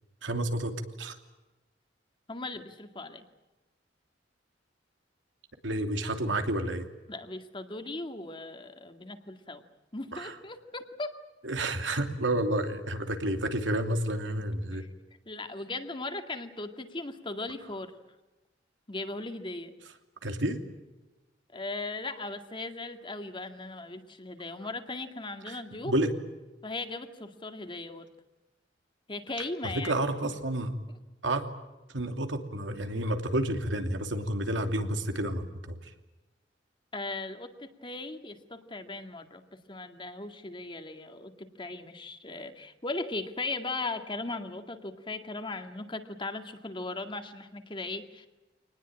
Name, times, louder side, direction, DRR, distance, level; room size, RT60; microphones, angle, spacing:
voice 1, 0.2-1.2 5.6-6.9 10.1-10.3 11.4-14.8 20.2-20.6 25.5-25.6 25.8-26.1 29.8-30.8 31.2-31.4 31.9-35.9, right 1 dB, 90° right, 6 dB, 2.9 m, -30 dB
voice 2, 2.3-3.2 7.1-9.6 9.9-11.1 14.3-14.4 14.8-14.9 15.3-17.9 18.9-19.7 21.5-25.9 26.6-28.1 29.1-29.9 30.2-30.3 36.9-48.3, left 2 dB, 25° left, 6 dB, 2.1 m, -38 dB
26.0 x 20.0 x 8.8 m, 1.1 s
head